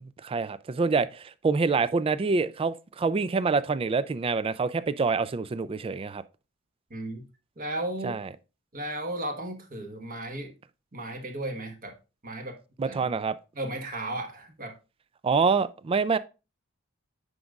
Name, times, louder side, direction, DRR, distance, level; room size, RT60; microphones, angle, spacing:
voice 1, 0.0-6.2 8.0-8.3 12.8-13.4 15.2-16.2, right 4 dB, 25° right, 0.3 m, -26 dB
voice 2, 6.9-7.2 7.6-8.2 8.7-10.5 10.9-11.9 12.2-13.1 13.5-14.7, right 1 dB, 40° right, 1.3 m, -35 dB
9.7 x 5.2 x 2.4 m
head